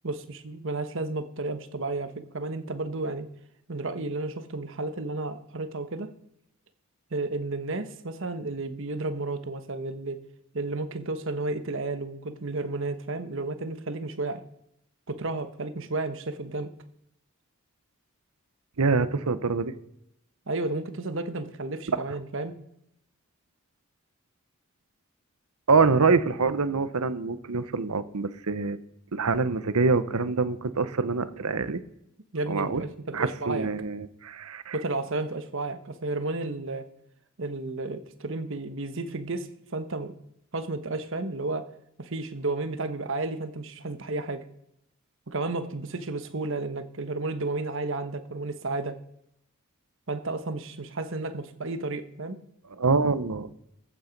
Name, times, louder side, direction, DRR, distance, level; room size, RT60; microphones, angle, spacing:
voice 1, 0.0-3.3 3.7-6.1 7.1-10.2 10.5-14.4 15.1-16.7 20.5-22.6 32.3-33.7 34.7-36.9 37.4-40.2 40.5-41.7 42.0-44.4 45.3-49.0 50.1-52.4, right 2 dB, 60° right, 10 dB, 1.2 m, -32 dB
voice 2, 18.8-19.7 21.9-22.0 25.7-28.8 29.1-31.8 32.5-32.8 33.1-34.8 52.8-53.5, right 4 dB, 90° right, 13 dB, 0.9 m, -25 dB
14.5 x 8.7 x 5.3 m, 0.78 s
head